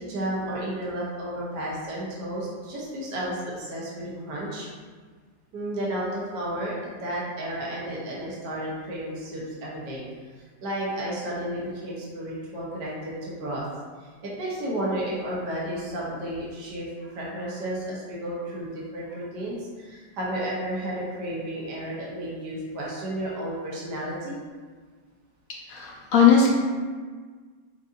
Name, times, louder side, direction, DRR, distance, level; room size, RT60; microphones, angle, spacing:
voice 1, 0.0-4.7 5.5-10.0 10.6-13.6 14.2-24.4, right 1 dB, 70° right, -6 dB, 1.5 m, -32 dB
voice 2, 25.7-26.5, left 6 dB, 60° left, -3 dB, 0.9 m, -18 dB
6.3 x 2.6 x 2.6 m, 1.5 s
omnidirectional pair, 1.9 m